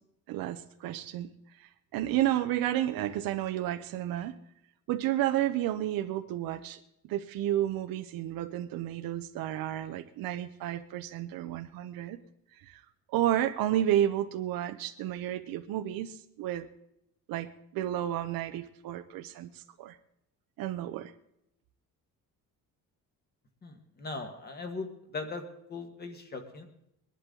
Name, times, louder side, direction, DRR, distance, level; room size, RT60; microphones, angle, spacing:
voice 1, 0.3-1.3 1.6-4.4 4.9-6.8 7.1-12.2 12.6-12.8 13.1-16.7 17.3-20.0 20.6-21.1, right 12 dB, 80° right, 8 dB, 0.8 m, -31 dB
voice 2, 23.6-25.4 25.7-26.7, left 3 dB, 30° left, 6 dB, 1.6 m, -39 dB
21.0 x 11.0 x 3.8 m, 0.78 s
cardioid pair, 165°, 35 cm